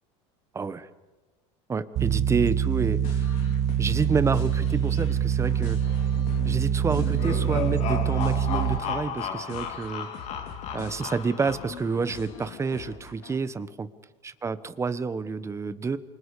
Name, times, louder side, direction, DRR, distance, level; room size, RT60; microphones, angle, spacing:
voice 1, 0.5-0.9 1.7-3.4 3.8-5.8 6.4-10.1 10.7-13.9 14.2-16.0, right 4 dB, 20° right, 13 dB, 1.2 m, -29 dB
sound 1, 1.9-8.8, right 9 dB, 50° right, 1.7 m, -25 dB
sound 2, 3.0-13.4, left 7 dB, 75° left, 3.3 m, -43 dB
sound 3, 6.9-12.0, left 7 dB, 50° left, 2.8 m, -34 dB
28.5 x 25.0 x 4.9 m, 1.2 s
supercardioid pair, 115°, 14 cm